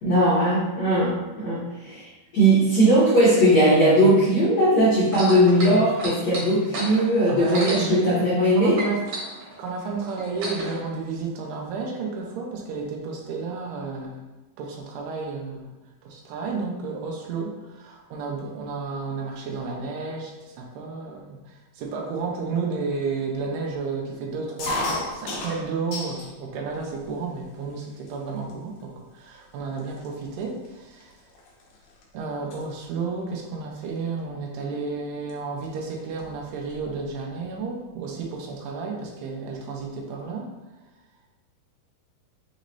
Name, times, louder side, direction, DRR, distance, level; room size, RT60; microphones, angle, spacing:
voice 1, 0.0-2.1 2.3-8.8, right 1 dB, 70° left, -10 dB, 1.6 m, -19 dB
sound 1, 5.0-8.5 8.7-10.8 11.6-11.7, right 1 dB, 60° right, 2.0 m, -33 dB
voice 2, 7.3-8.3 8.6-9.1 9.6-14.3 14.6-15.7 16.0-31.2 32.1-40.5, right 4 dB, 90° right, 0 dB, 2.8 m, -32 dB
sound 2, 24.6-26.3 26.8-27.4 28.1-28.2 28.4-28.8 29.5-29.6 29.8-32.0 32.3-32.6 34.0-34.2 35.3-35.4 35.6-35.7 36.0-36.9, left 2 dB, 85° left, 1.7 m, -33 dB
6.2 x 3.1 x 2.7 m, 1.1 s
omnidirectional pair, 4.7 m